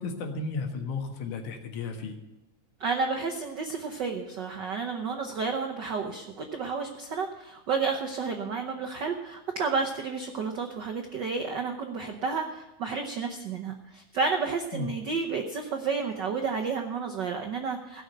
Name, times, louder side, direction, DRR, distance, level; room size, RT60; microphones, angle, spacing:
voice 1, 0.0-2.2 14.7-14.9, left 4 dB, 85° left, 4 dB, 3.0 m, -34 dB
voice 2, 2.8-18.0, right 5 dB, 80° right, 4 dB, 0.9 m, -31 dB
16.5 x 6.3 x 7.9 m, 0.98 s
omnidirectional pair, 3.4 m